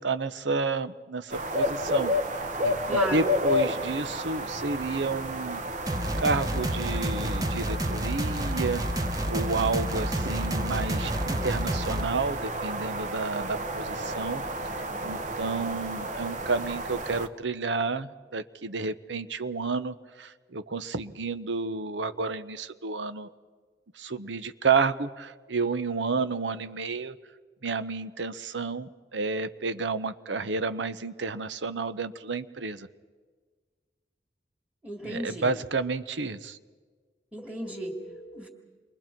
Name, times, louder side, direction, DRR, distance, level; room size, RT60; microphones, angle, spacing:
voice 1, 0.0-5.6 6.0-8.8 9.3-14.4 14.8-23.3 24.0-27.2 27.6-32.9 35.0-36.6, right 4 dB, 85° right, 12 dB, 0.9 m, -31 dB
sound 1, 1.3-17.3, left 1 dB, 45° right, 1.0 m, -31 dB
voice 2, 2.8-3.3 34.8-35.5 37.3-38.5, right 1 dB, 5° right, -5 dB, 2.1 m, -35 dB
sound 2, 5.9-12.1, equal, 20° right, 1.0 m, -30 dB
28.5 x 23.5 x 4.6 m, 1.5 s
head